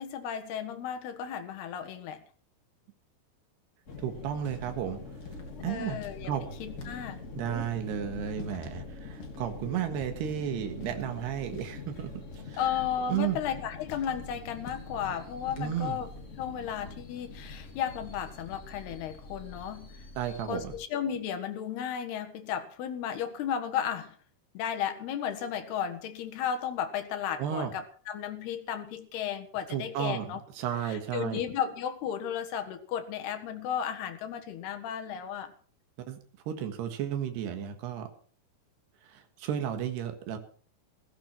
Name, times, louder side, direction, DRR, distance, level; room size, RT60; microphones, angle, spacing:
voice 1, 0.0-2.2 5.5-6.3 6.6-7.2 12.5-16.1 16.4-19.9 20.5-24.2 24.5-30.4 30.8-35.5, left 9 dB, 75° left, 8 dB, 3.5 m, -34 dB
sound 1, 3.9-20.8, left 3 dB, 35° left, 1.2 m, -44 dB
voice 2, 4.0-5.0 5.6-6.0 6.3-6.4 6.8-6.9 7.4-12.6 13.1-13.4 15.6-16.0 20.2-20.7 27.4-27.7 29.7-31.4 36.1-36.2 36.5-38.1 39.1-40.4, right 9 dB, 80° right, 7 dB, 3.7 m, -33 dB
sound 2, 4.5-4.7 5.2-5.5 6.0-6.2 6.7-7.0 7.6-7.8 8.4-8.7 9.2-9.5 10.0-10.3 10.8-11.1 11.5-11.9 12.3-12.6 13.1-13.5 13.9-14.2 14.6-14.9 15.5-15.7, left 6 dB, 55° left, 4.4 m, -49 dB
16.0 x 15.5 x 4.4 m, 0.43 s
omnidirectional pair, 4.7 m